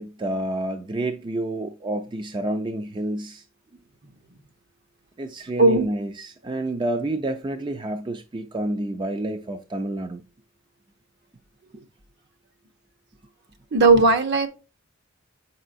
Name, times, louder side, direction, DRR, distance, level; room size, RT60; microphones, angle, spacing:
voice 1, 0.0-3.4 5.2-10.2, right 1 dB, 25° right, 0.4 m, -29 dB
voice 2, 13.7-14.5, right 3 dB, 55° right, 0.9 m, -16 dB
8.0 x 5.5 x 2.5 m
head